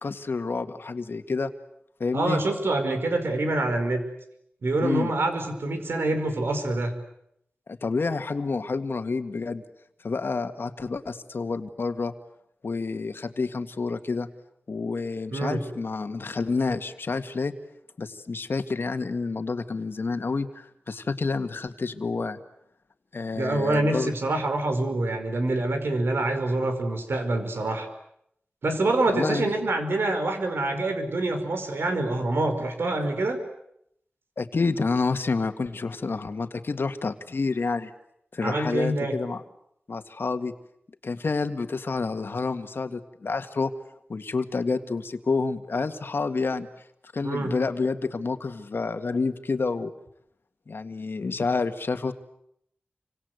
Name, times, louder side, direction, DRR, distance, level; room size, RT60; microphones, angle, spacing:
voice 1, 0.0-1.5 2.0-2.4 4.8-5.1 7.7-9.6 10.0-12.1 12.6-14.3 14.7-17.5 18.0-22.4 23.1-24.1 29.0-29.6 34.4-37.9 38.3-39.4 39.9-40.5 41.0-43.7 44.1-46.7 47.1-49.9 50.7-52.1, left 4 dB, 70° left, 8 dB, 2.0 m, -29 dB
voice 2, 2.1-4.1 4.6-6.9 15.3-15.6 23.3-27.9 28.6-33.4 38.4-39.1 47.2-47.5, right 2 dB, 80° right, 7 dB, 5.1 m, -26 dB
29.0 x 25.5 x 8.1 m, 0.75 s
wide cardioid pair, 70°, 4 cm